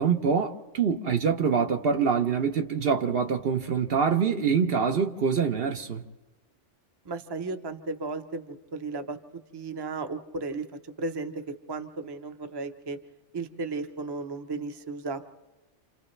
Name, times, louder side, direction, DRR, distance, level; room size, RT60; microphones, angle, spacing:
voice 1, 0.0-6.0, right 6 dB, 55° right, 1.0 m, -25 dB
voice 2, 7.0-9.2 9.5-10.6 11.0-11.4 11.7-13.0 13.3-15.2, right 3 dB, 25° right, 0.7 m, -34 dB
28.5 x 28.0 x 3.2 m
omnidirectional pair, 1.2 m